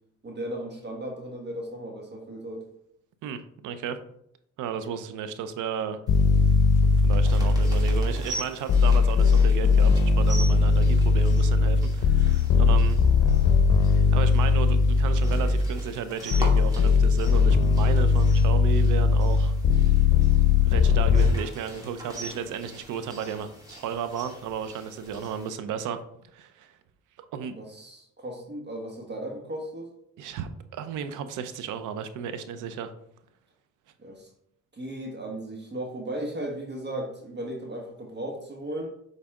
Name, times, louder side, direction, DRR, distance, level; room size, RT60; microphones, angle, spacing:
voice 1, 0.2-2.7 12.5-12.7 27.5-29.9 34.0-34.3 34.7-38.9, right 1 dB, 35° right, 1 dB, 1.5 m, -36 dB
voice 2, 3.2-4.0 4.6-6.0 6.8-13.0 13.9-19.5 20.7-26.0 26.3-26.7 27.3-27.6 30.2-32.9, right 7 dB, 85° right, 10 dB, 0.7 m, -34 dB
sound 1, 6.1-8.2 8.7-15.8 16.3-21.3, left 4 dB, 60° left, 0.9 m, -20 dB
sound 2, 6.1-25.5, right 1 dB, 10° right, 2.5 m, -43 dB
7.4 x 4.1 x 3.7 m, 0.71 s
cardioid pair, 90°, 30 cm